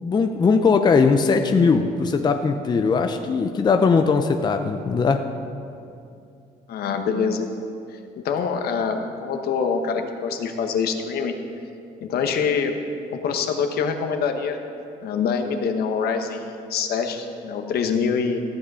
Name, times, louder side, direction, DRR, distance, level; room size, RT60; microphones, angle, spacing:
voice 1, 0.0-5.3, left 4 dB, 25° left, 6 dB, 0.5 m, -19 dB
voice 2, 6.7-7.6 7.9-11.3 12.0-12.7 13.2-14.6 15.0-16.4 16.7-18.4, left 6 dB, 65° left, 5 dB, 1.2 m, -25 dB
14.5 x 7.9 x 5.6 m, 2.5 s
cardioid pair, 110°, 17 cm